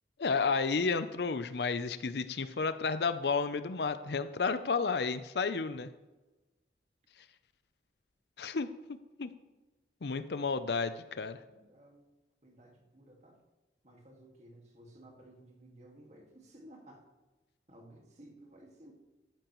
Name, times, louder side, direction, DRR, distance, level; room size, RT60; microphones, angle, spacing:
voice 1, 0.2-5.9 8.4-9.3 10.0-11.4, left 4 dB, 65° left, 12 dB, 0.6 m, -32 dB
voice 2, 11.5-12.0 12.4-13.4 13.8-17.0 17.7-18.9, right 1 dB, 40° right, 1 dB, 1.9 m, -56 dB
13.5 x 9.9 x 3.1 m, 1.1 s
head